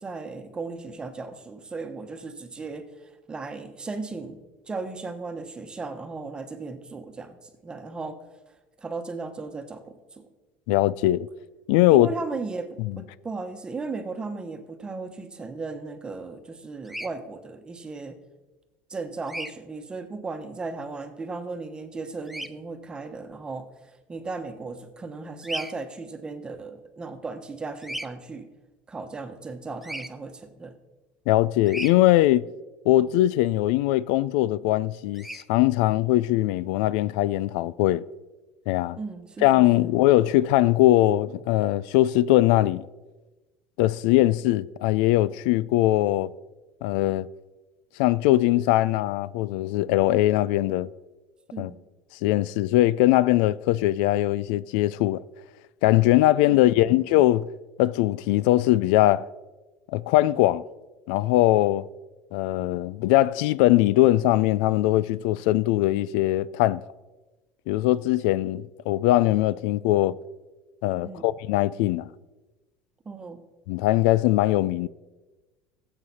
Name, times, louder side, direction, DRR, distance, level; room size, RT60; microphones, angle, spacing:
voice 1, 0.0-4.4 4.7-7.4 7.6-8.2 8.8-10.3 11.9-18.2 18.9-23.7 24.1-28.5 28.9-30.7 39.0-39.9 51.5-51.8 56.8-57.0 71.0-71.2 73.0-73.4, right 3 dB, 20° right, 1.1 m, -36 dB
voice 2, 10.7-11.3 11.7-12.1 12.8-13.0 31.3-32.5 32.9-38.0 38.7-39.0 39.4-42.8 43.8-46.3 46.8-47.3 48.0-50.9 51.6-51.7 52.2-55.2 55.8-57.5 57.8-59.3 59.9-60.6 61.1-61.8 62.3-66.8 67.7-70.2 70.8-72.1 73.7-74.9, left 15 dB, 80° left, 0.3 m, -21 dB
Bird vocalization bird call bird song, 16.8-17.1 19.3-19.5 22.3-22.5 25.4-25.7 27.8-28.1 29.8-30.1 31.7-31.9 35.1-35.4, right 1 dB, 5° right, 0.5 m, -34 dB
15.0 x 7.9 x 4.2 m
supercardioid pair, 125°, 5 cm